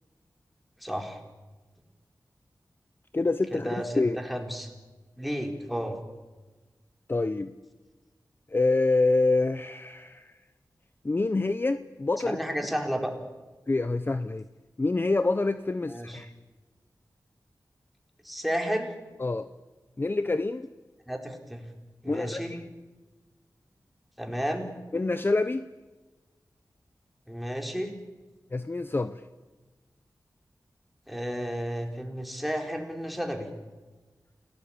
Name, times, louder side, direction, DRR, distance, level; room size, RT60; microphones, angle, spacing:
voice 1, 0.8-1.2 3.5-4.7 5.2-6.0 12.2-13.2 15.9-16.2 18.2-18.9 21.1-21.6 22.0-22.5 24.2-24.7 27.3-27.9 31.1-33.5, equal, ahead, 3 dB, 4.2 m, -32 dB
voice 2, 3.1-3.7 4.0-4.2 7.1-7.5 8.5-10.4 11.0-12.4 13.7-14.5 14.8-16.3 19.2-19.5 20.0-20.7 22.1-22.6 24.9-25.7 28.5-29.2, left 3 dB, 30° left, 11 dB, 0.8 m, -26 dB
29.0 x 18.0 x 8.8 m, 1.2 s
wide cardioid pair, 105°, 7 cm